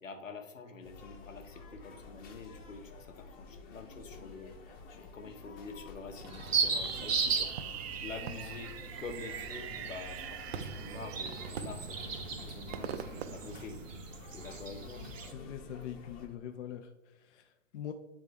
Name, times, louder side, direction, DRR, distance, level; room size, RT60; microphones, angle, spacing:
voice 1, 0.0-4.6 4.9-7.6 8.0-13.8 14.3-15.0, left 4 dB, 85° left, 5 dB, 0.9 m, -47 dB
sound 1, 0.8-16.3, left 3 dB, 25° left, 0.7 m, -50 dB
Fireworks, 6.2-14.3, right 8 dB, 55° right, 0.5 m, -43 dB
sound 2, 6.5-15.3, right 5 dB, 80° right, 1.0 m, -37 dB
voice 2, 15.3-17.9, left 10 dB, 60° left, 6 dB, 0.5 m, -43 dB
8.2 x 3.6 x 3.3 m, 1.0 s
hypercardioid pair, 115°, 38 cm